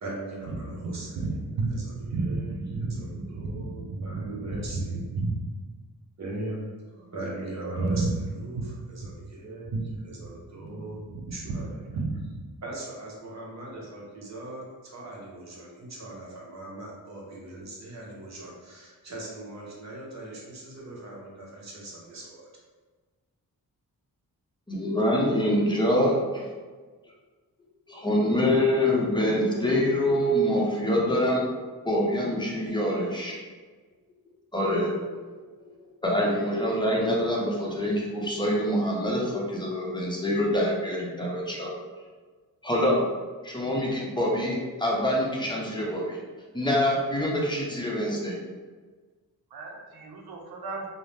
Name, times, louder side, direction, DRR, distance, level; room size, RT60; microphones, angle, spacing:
voice 1, 0.0-5.0 6.2-6.7 7.0-9.8 10.0-11.0 11.3-11.8 12.6-22.4, right 2 dB, 45° right, -4 dB, 0.9 m, -40 dB
voice 2, 0.9-4.3 4.6-5.3 7.8-8.1 8.5-8.6 9.0-9.1 9.7-9.9 10.5-11.4 11.9-12.2 49.5-50.9, right 3 dB, 85° right, 1 dB, 0.6 m, -32 dB
voice 3, 24.7-26.5 27.9-31.5 31.8-33.4 34.5-34.9 35.6-35.7 36.0-41.7 42.6-43.0 43.4-46.2 46.5-48.4, equal, 10° left, -3 dB, 0.7 m, -25 dB
2.6 x 2.1 x 3.2 m, 1.4 s
cardioid pair, 70°, 37 cm